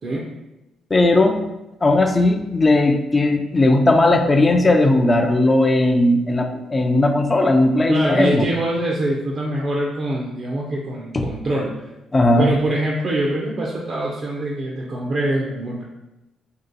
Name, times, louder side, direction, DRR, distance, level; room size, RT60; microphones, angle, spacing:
voice 1, 0.9-1.4 1.8-8.4 11.1-11.3 12.1-12.5, left 2 dB, 25° left, 4 dB, 0.4 m, -17 dB
voice 2, 7.9-11.9 12.4-15.8, right 1 dB, 45° right, -3 dB, 0.6 m, -24 dB
2.9 x 2.8 x 3.8 m, 0.96 s
cardioid pair, 90°, 0 cm